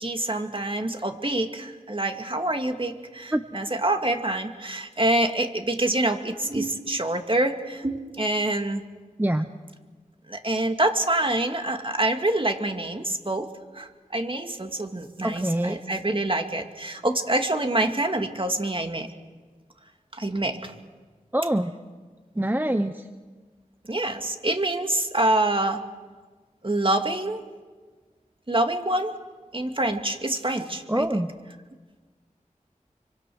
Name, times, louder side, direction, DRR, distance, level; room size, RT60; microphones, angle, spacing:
voice 1, 0.0-8.8 10.3-13.5 13.7-19.1 20.1-20.7 23.9-25.8 26.6-27.4 28.5-29.1 29.5-31.3, right 1 dB, 40° right, 5 dB, 2.1 m, -26 dB
voice 2, 15.2-15.8 21.3-21.7 22.4-22.9 30.9-31.3, right 1 dB, 15° right, 8 dB, 0.8 m, -24 dB
27.0 x 24.5 x 6.3 m, 1.4 s
wide cardioid pair, 60°, 14 cm